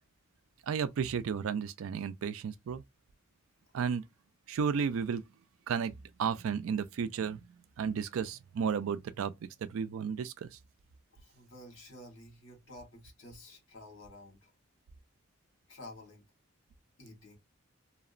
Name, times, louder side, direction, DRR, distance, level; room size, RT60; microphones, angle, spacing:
voice 1, 0.6-2.8 3.7-4.0 4.5-5.2 5.7-7.4 7.8-10.6, right 6 dB, 70° right, 0.3 m, -33 dB
voice 2, 11.1-14.5 15.7-16.2 17.0-17.4, left 1 dB, 60° left, 1.2 m, -51 dB
2.8 x 2.1 x 2.4 m
head